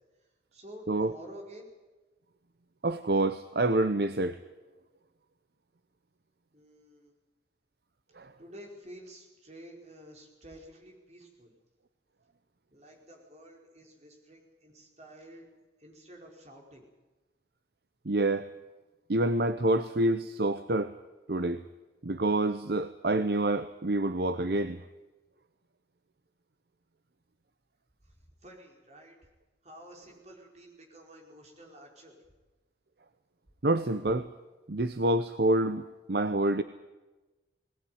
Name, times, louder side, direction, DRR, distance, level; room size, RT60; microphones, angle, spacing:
voice 1, 0.5-1.7 6.5-7.1 8.4-11.5 12.7-15.5 15.8-16.9 28.0-29.2 29.6-32.2, equal, 35° right, 0 dB, 5.0 m, -50 dB
voice 2, 2.8-4.4 8.2-8.3 18.1-18.5 19.1-20.9 21.3-21.6 22.0-24.8 33.6-34.3 34.7-36.6, right 2 dB, 60° right, 11 dB, 0.8 m, -27 dB
20.0 x 18.0 x 9.4 m, 1.1 s
head